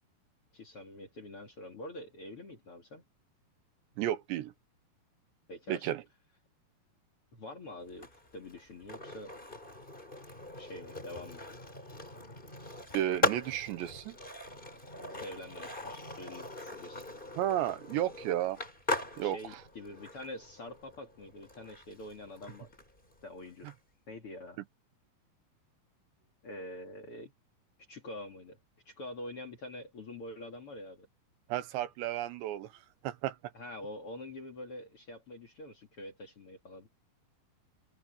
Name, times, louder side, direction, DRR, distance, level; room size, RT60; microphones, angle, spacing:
voice 1, 0.5-3.0 5.5-5.9 7.3-9.3 10.6-11.4 15.2-17.0 19.1-22.7 23.2-23.7 24.1-24.6 26.4-27.3 27.9-28.6 28.9-31.1 33.5-36.9, left 1 dB, 40° left, 2.5 m, -45 dB
voice 2, 4.0-4.5 5.7-6.0 12.9-14.2 17.4-18.6 19.2-19.4 31.5-32.7 33.0-33.4, right 12 dB, 75° right, 3.2 m, -32 dB
Skateboard, 7.9-23.7, left 1 dB, 10° left, 5.0 m, -40 dB
omnidirectional pair, 5.2 m